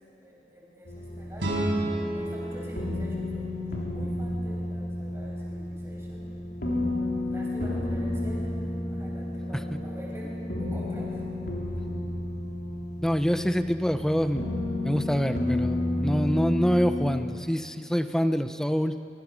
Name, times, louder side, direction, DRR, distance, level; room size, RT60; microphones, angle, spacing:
voice 1, 0.2-1.6 2.1-6.3 7.2-11.2, equal, 15° right, -4 dB, 6.8 m, -45 dB
sound 1, 0.8-17.3, left 1 dB, 65° left, 3.7 m, -32 dB
sound 2, 1.4-4.4, right 1 dB, 75° right, 5.9 m, -32 dB
voice 2, 13.0-14.4 14.8-19.0, equal, 5° left, 9 dB, 0.7 m, -26 dB
23.0 x 23.0 x 6.4 m, 2.7 s
head